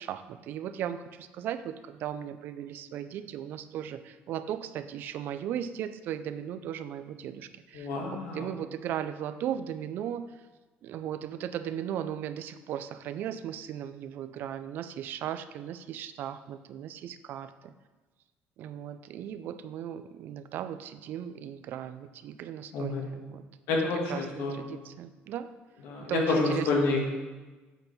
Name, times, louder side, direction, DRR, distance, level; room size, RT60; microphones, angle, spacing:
voice 1, 0.0-10.3 10.8-17.7 18.6-23.4 24.1-25.5 26.1-26.7, right 10 dB, 50° right, 12 dB, 0.4 m, -37 dB
voice 2, 7.7-8.5 22.7-23.0 23.7-24.5 25.8-27.1, left 3 dB, 90° left, -1 dB, 1.8 m, -28 dB
7.7 x 4.5 x 5.3 m, 1.2 s
cardioid pair, 175°, 4 cm